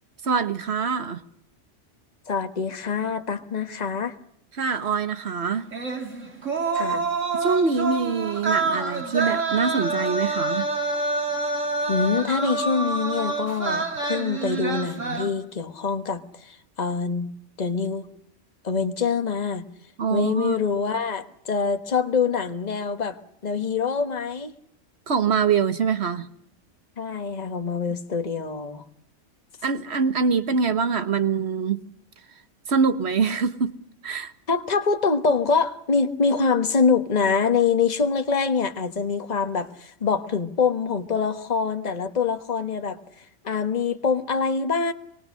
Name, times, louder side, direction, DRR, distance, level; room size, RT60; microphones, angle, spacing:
voice 1, 0.2-1.2 4.5-5.7 7.3-10.7 20.0-20.6 25.1-26.3 29.6-31.8 32.7-33.7 34.0-34.3, right 5 dB, 60° right, 1.6 m, -24 dB
voice 2, 2.3-4.2 6.7-7.0 11.9-17.3 17.6-18.1 18.6-19.6 20.1-23.2 23.4-24.5 27.0-28.8 34.5-43.0 43.4-44.9, left 5 dB, 35° left, 1.4 m, -25 dB
sound 1, 5.7-15.3, right 3 dB, 75° right, 3.3 m, -27 dB
25.0 x 24.5 x 6.4 m
omnidirectional pair, 1.3 m